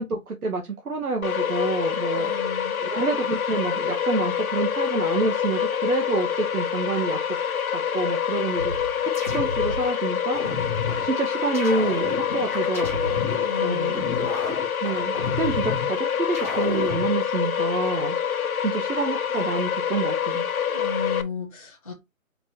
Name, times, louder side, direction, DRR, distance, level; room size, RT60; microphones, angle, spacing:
voice 1, 0.0-2.3 2.8-7.2 7.7-8.7 9.0-10.4 11.0-13.2 13.6-14.0 14.8-18.2 18.6-20.5, right 4 dB, 85° right, 1.1 m, -28 dB
sound 1, 1.2-21.2, left 8 dB, 80° left, 0.8 m, -26 dB
voice 2, 2.1-2.8 13.4-14.3 20.7-21.9, left 4 dB, 25° left, 0.6 m, -34 dB
sound 2, 8.5-9.9 10.3-11.1 11.5-13.5 13.9-15.9 16.3-17.1, left 3 dB, 10° right, 0.9 m, -31 dB
4.6 x 2.6 x 4.1 m
hypercardioid pair, 170°, 42 cm